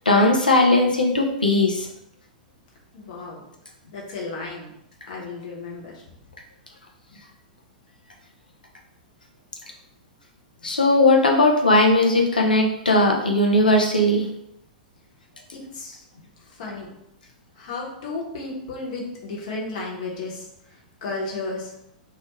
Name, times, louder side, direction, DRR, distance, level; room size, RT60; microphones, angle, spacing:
voice 1, 0.1-1.9 10.6-14.3, left 2 dB, 90° left, 1 dB, 0.4 m, -18 dB
voice 2, 2.9-3.4 3.9-4.7 5.0-6.0 15.7-16.0 16.5-16.9 17.6-20.5 21.0-21.7, left 3 dB, 60° left, -3 dB, 0.9 m, -33 dB
2.3 x 2.1 x 3.0 m, 0.78 s
figure-of-eight pair, 105°, 5 cm